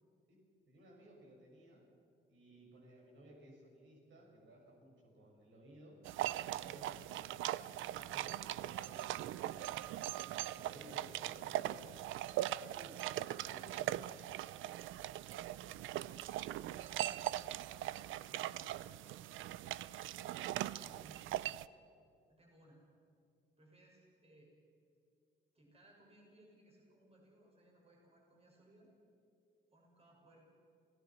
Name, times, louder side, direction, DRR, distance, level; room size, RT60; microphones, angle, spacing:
voice 1, 0.7-1.9 2.3-9.8 10.1-11.9 12.7-14.2, right 1 dB, 70° right, -2 dB, 7.2 m, -58 dB
sound 1, 6.0-21.7, right 14 dB, 85° right, 0.5 m, -40 dB
voice 2, 16.5-17.3 18.1-19.0 20.0-21.2 21.7-21.8 22.3-22.8 23.6-24.5 25.5-28.9 29.7-30.5, right 1 dB, 30° right, -1 dB, 6.0 m, -65 dB
27.5 x 17.0 x 6.1 m, 2.5 s
cardioid pair, 90°, 20 cm